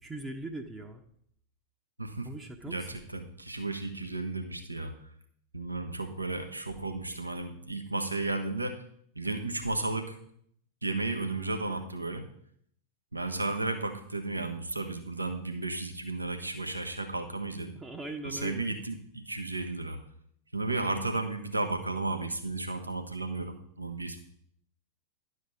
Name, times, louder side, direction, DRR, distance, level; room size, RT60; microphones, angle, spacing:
voice 1, 0.0-1.0 2.2-2.9 17.7-18.7, right 2 dB, 15° right, 2 dB, 0.9 m, -40 dB
voice 2, 2.0-2.3 2.7-4.9 5.5-8.8 9.1-10.2 10.8-12.2 13.1-17.7 18.2-20.0 20.5-24.2, right 2 dB, 85° right, 6 dB, 1.1 m, -33 dB
11.5 x 5.2 x 5.7 m, 0.67 s
figure-of-eight pair, 90°, 0 cm